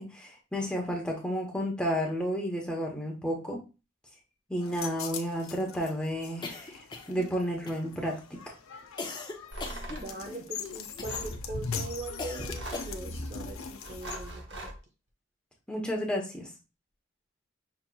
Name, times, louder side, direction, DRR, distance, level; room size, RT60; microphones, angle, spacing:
voice 1, 0.0-3.6 4.5-8.4 15.7-16.5, equal, 5° left, 0 dB, 0.8 m, -32 dB
sound 1, 4.6-14.3, left 4 dB, 90° left, 0.6 m, -40 dB
sound 2, 6.4-7.3 7.7-8.2 9.0-10.5 11.0-11.4 12.2-13.2, left 3 dB, 20° left, 0.4 m, -40 dB
sound 3, 9.5-10.1 11.1-11.4 12.4-13.0 13.8-14.8, right 1 dB, 60° right, 0.8 m, -41 dB
voice 2, 9.9-14.7, right 2 dB, 35° right, 2 dB, 0.5 m, -41 dB
5.9 x 2.9 x 2.2 m, 0.30 s
head